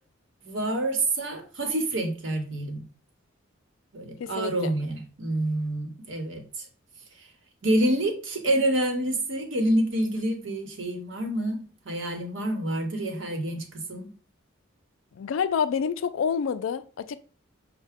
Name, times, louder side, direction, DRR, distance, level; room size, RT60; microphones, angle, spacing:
voice 1, 0.4-2.8 3.9-6.7 7.2-7.3 7.6-14.1, right 1 dB, 65° right, 0.9 m, -27 dB
voice 2, 4.2-4.7 15.1-17.2, left 6 dB, 75° left, 0.3 m, -28 dB
5.5 x 2.1 x 3.5 m
head